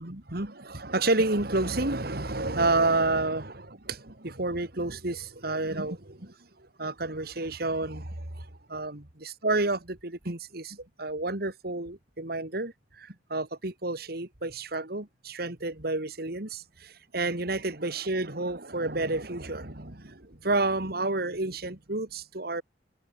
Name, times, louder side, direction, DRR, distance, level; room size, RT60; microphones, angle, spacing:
voice 1, 0.0-6.3 6.8-22.6, right 2 dB, 60° right, 2.8 m, -30 dB
head